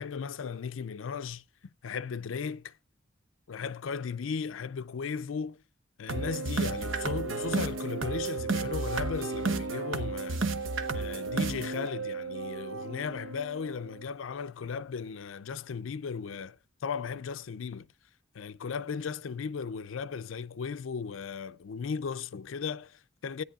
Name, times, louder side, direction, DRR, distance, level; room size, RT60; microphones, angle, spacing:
voice 1, 0.0-2.8 3.5-5.6 6.0-10.5 10.9-17.9 18.3-23.4, left 6 dB, 90° left, 0.5 m, -36 dB
sound 1, 6.1-14.0, right 3 dB, 80° right, 0.9 m, -33 dB
16.5 x 9.5 x 2.4 m
head